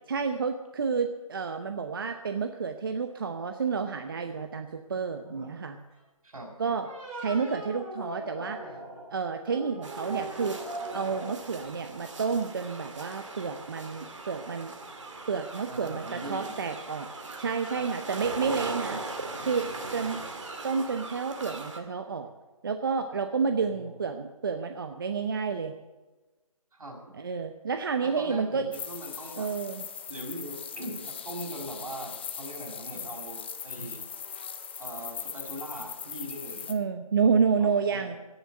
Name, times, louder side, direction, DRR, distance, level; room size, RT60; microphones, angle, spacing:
voice 1, 0.1-5.8 6.6-6.9 7.2-8.6 9.1-10.6 10.9-14.7 15.3-17.1 17.4-19.0 19.4-19.7 19.9-20.2 20.6-22.3 22.6-25.7 27.2-28.7 29.4-29.8 36.7-38.1, right 5 dB, 40° right, 7 dB, 0.8 m, -30 dB
sound 1, 5.2-5.5 6.6-9.0 9.4-11.3, right 2 dB, 15° right, 4.1 m, -40 dB
sound 2, 9.8-21.8, right 3 dB, 55° right, 2.2 m, -40 dB
voice 2, 15.7-16.6 17.7-18.0 20.0-20.2 23.7-23.9 26.7-27.0 28.0-29.5 30.1-34.0 34.8-36.7 37.3-38.2, right 1 dB, 75° right, 0 dB, 5.5 m, -41 dB
sound 3, 28.7-36.7, left 7 dB, 20° left, 0.6 m, -40 dB
17.5 x 7.2 x 7.6 m, 1.2 s
figure-of-eight pair, 165°, 18 cm